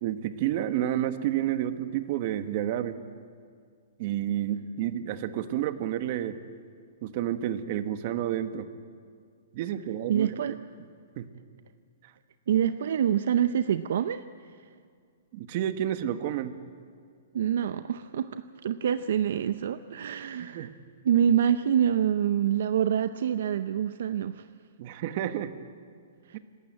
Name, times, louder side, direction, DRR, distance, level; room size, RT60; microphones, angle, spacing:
voice 1, 0.0-3.0 4.0-6.4 7.0-8.7 9.5-10.3 11.2-11.3 15.3-16.6 20.4-20.7 24.8-25.5 26.3-26.4, right 11 dB, 45° right, 10 dB, 1.2 m, -30 dB
voice 2, 10.1-10.6 12.5-14.2 17.3-20.7 21.0-24.5 26.3-26.4, right 9 dB, 70° right, 12 dB, 0.6 m, -26 dB
27.0 x 13.0 x 8.8 m, 2.1 s
hypercardioid pair, 145°, 0 cm